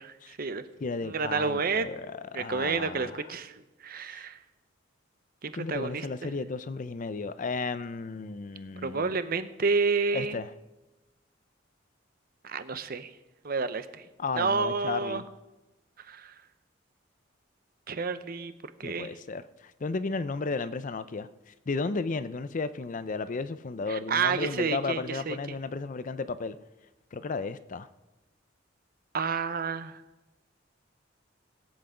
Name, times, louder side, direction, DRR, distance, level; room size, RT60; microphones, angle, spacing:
voice 1, 0.0-0.6 1.0-1.8 2.3-3.5 3.8-4.4 5.4-6.3 8.8-10.4 12.4-13.1 13.4-13.9 14.4-15.2 16.1-16.3 17.9-18.5 18.8-19.1 23.9-25.4 29.1-30.0, right 4 dB, 50° right, 12 dB, 0.7 m, -30 dB
voice 2, 0.8-3.2 4.0-4.2 5.5-9.2 10.1-10.5 14.2-15.2 18.8-26.6 27.1-27.9, left 4 dB, 45° left, 14 dB, 0.5 m, -34 dB
18.0 x 8.1 x 5.0 m, 1.0 s
head